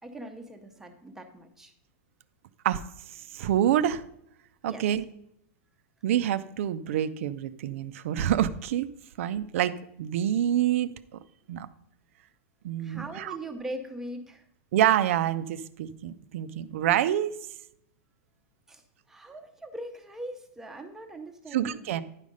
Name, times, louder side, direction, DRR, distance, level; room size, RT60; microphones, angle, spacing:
voice 1, 0.0-1.7 4.7-4.9 12.8-14.4 18.7-22.0, right 1 dB, 5° right, 4 dB, 0.8 m, -41 dB
voice 2, 3.3-4.0 4.6-5.0 6.0-8.9 9.2-9.7 10.0-10.9 11.5-11.7 12.6-13.4 14.7-17.4 21.5-22.0, right 11 dB, 65° right, 13 dB, 0.5 m, -26 dB
10.5 x 5.0 x 5.3 m, 0.75 s
supercardioid pair, 160°, 8 cm